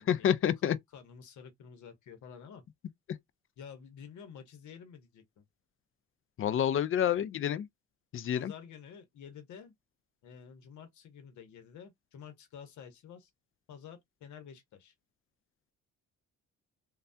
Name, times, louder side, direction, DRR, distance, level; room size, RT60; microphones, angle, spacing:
voice 1, 0.1-0.8 6.4-7.7 8.1-8.5, left 9 dB, 45° left, 0.4 m, -28 dB
voice 2, 0.9-2.6 3.6-5.4 8.3-9.7 10.2-13.3 13.7-14.9, left 7 dB, 75° left, 0.9 m, -50 dB
3.2 x 2.3 x 2.6 m
cardioid pair, 90°, 30 cm